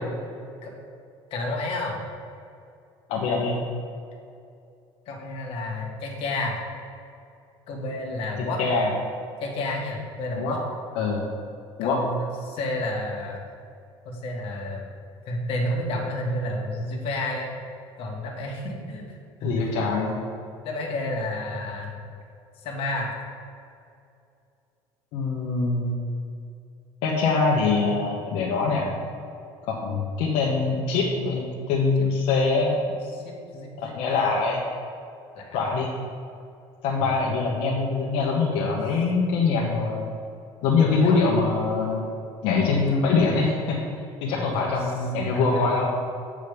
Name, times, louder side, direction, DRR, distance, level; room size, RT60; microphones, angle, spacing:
voice 1, 1.3-2.0 5.1-6.6 7.7-8.6 9.4-10.6 11.8-13.4 14.1-14.9 15.2-17.5 18.0-19.1 19.4-19.9 20.6-21.9 22.6-23.1 33.1-34.2 35.4-35.7 37.0-37.1 39.6-40.0 40.8-41.5 42.7-43.1 44.4-44.8 45.3-45.8, left 1 dB, 60° left, -1 dB, 1.8 m, -31 dB
voice 2, 3.1-3.6 8.4-8.9 10.3-10.6 10.9-11.3 11.8-12.0 19.4-20.2 25.1-26.0 27.0-28.9 29.7-32.8 33.8-34.6 35.5-35.9 36.8-40.1 40.6-42.1 42.4-43.8 44.2-45.9, left 4 dB, 75° left, -3 dB, 1.2 m, -23 dB
8.3 x 5.1 x 5.1 m, 2.5 s
cardioid pair, 135°, 11 cm